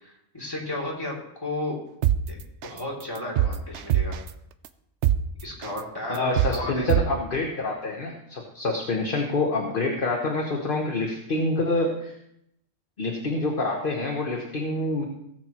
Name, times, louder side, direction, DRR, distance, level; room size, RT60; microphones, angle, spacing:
voice 1, 0.0-1.8 2.3-2.4 2.6-4.2 5.4-7.0, left 1 dB, 20° left, -4 dB, 2.6 m, -33 dB
sound 1, 2.0-2.2 2.6-2.8 3.2-4.3 4.7-4.8 5.0-5.2 5.6-5.8 6.2-6.6 6.9-7.0, right 12 dB, 70° right, 0.8 m, -21 dB
voice 2, 6.1-12.1 13.0-15.0, left 2 dB, 45° left, 1 dB, 1.3 m, -27 dB
17.5 x 7.7 x 3.0 m, 0.78 s
omnidirectional pair, 1.3 m